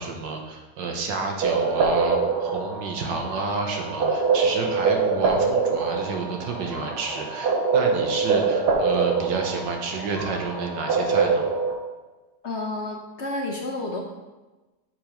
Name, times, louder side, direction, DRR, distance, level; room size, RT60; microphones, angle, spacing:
voice 1, 0.0-11.4, right 4 dB, 85° right, 2 dB, 1.7 m, -30 dB
sound 1, 1.4-11.7, right 4 dB, 70° right, 1.6 m, -24 dB
voice 2, 12.4-14.0, left 2 dB, 50° left, 0 dB, 0.9 m, -30 dB
6.9 x 4.9 x 5.2 m, 1.2 s
omnidirectional pair, 1.9 m